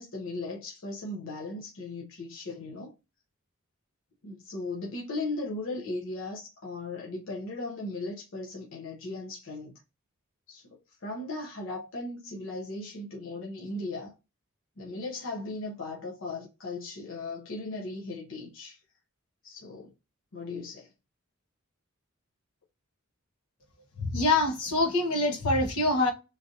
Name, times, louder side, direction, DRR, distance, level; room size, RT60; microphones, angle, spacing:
voice 1, 0.0-2.9 4.2-9.8 10.5-10.6 11.0-14.1 14.8-18.8 19.4-19.9 20.3-20.9, left 2 dB, 60° left, 0.7 m, -37 dB
voice 2, 24.0-26.1, left 2 dB, 80° left, 1.0 m, -25 dB
3.2 x 2.5 x 2.6 m
head